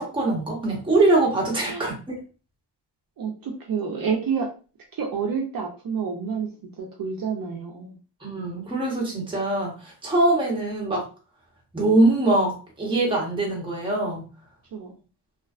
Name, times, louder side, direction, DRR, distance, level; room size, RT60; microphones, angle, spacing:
voice 1, 0.0-2.0 8.2-11.0 11.7-14.3, right 2 dB, 10° right, -3 dB, 0.8 m, -23 dB
voice 2, 3.2-4.5 4.9-8.0 14.7-15.0, right 6 dB, 55° right, -1 dB, 0.5 m, -29 dB
2.5 x 2.2 x 2.3 m, 0.35 s
wide cardioid pair, 150°, 43 cm